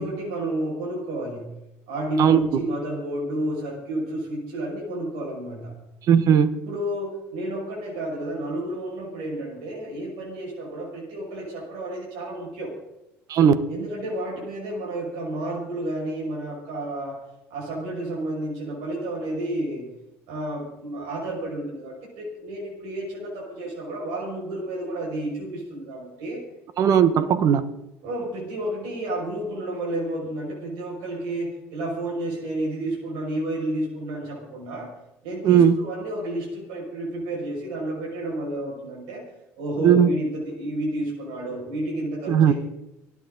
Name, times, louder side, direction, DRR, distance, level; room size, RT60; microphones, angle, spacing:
voice 1, 0.0-1.5 1.9-5.7 6.6-12.8 13.7-17.2 17.5-19.9 20.3-26.4 28.0-34.9 35.2-39.3 39.6-42.5, right 1 dB, 80° right, -4 dB, 6.7 m, -31 dB
voice 2, 6.1-6.5 13.3-13.5 26.8-27.6 35.4-35.8 39.8-40.1 42.3-42.5, right 8 dB, 55° right, 12 dB, 1.4 m, -17 dB
28.5 x 10.5 x 4.1 m, 0.89 s
supercardioid pair, 80°, 7 cm